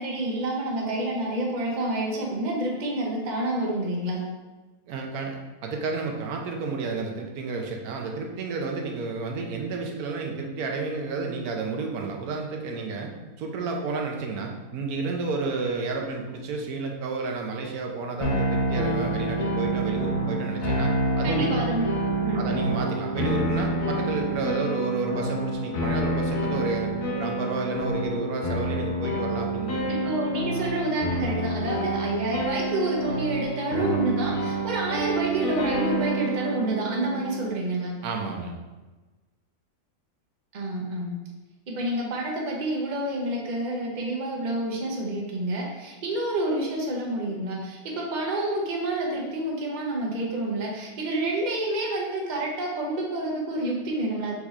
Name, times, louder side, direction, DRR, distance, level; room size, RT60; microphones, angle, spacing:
voice 1, 0.0-4.2 21.2-21.9 22.2-22.5 30.0-37.9 40.5-41.1 41.7-54.3, right 1 dB, 40° right, -2 dB, 0.8 m, -28 dB
voice 2, 4.9-13.1 13.4-21.5 22.3-30.1 38.0-38.5, right 3 dB, 80° right, 2 dB, 1.2 m, -31 dB
sound 1, 18.2-37.5, right 1 dB, 65° left, 1.3 m, -28 dB
4.7 x 4.1 x 2.4 m, 1.2 s
omnidirectional pair, 1.6 m